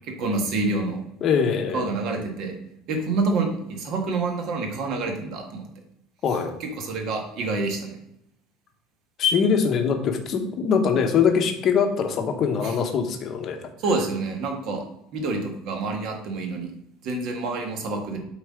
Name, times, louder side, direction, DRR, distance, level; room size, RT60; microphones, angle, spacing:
voice 1, 0.2-1.0 1.7-2.5 2.9-5.6 6.6-8.0 12.6-12.7 13.8-14.8 15.1-16.7 17.0-18.2, right 3 dB, 45° right, 3 dB, 1.5 m, -27 dB
voice 2, 1.2-1.9 6.2-6.5 9.2-13.6, left 6 dB, 30° left, 5 dB, 0.9 m, -22 dB
7.9 x 4.2 x 4.9 m, 0.80 s
cardioid pair, 180°, 0 cm